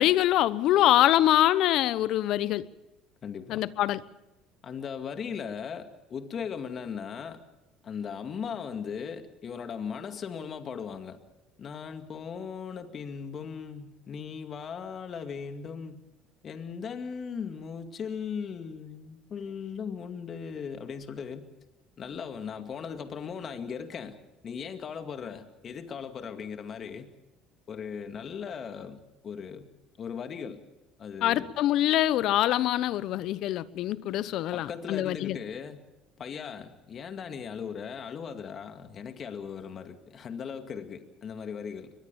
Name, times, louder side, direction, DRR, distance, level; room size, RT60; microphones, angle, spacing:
voice 1, 0.0-2.7 3.5-4.0 31.2-35.4, left 13 dB, 65° left, 0.9 m, -24 dB
voice 2, 3.2-3.7 4.6-7.4 7.8-11.2 11.6-16.0 16.4-21.5 22.0-24.2 24.4-27.1 27.7-29.7 30.0-30.6 31.0-31.5 34.5-35.9 36.2-41.9, left 6 dB, 45° left, 2.3 m, -38 dB
23.0 x 21.0 x 7.1 m
hypercardioid pair, 70°, 0 cm